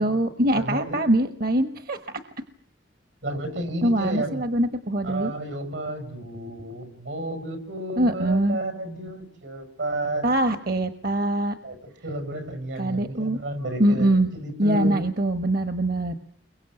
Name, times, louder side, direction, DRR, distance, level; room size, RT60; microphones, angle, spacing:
voice 1, 0.0-2.0 3.8-5.3 8.0-8.6 10.2-11.6 12.8-13.4 13.8-14.3 14.6-16.1, right 1 dB, 55° right, 9 dB, 1.3 m, -23 dB
voice 2, 0.5-1.0 3.2-4.4 5.0-10.3 11.6-15.0, right 1 dB, 85° right, 9 dB, 6.8 m, -32 dB
30.0 x 23.0 x 8.0 m, 0.64 s
head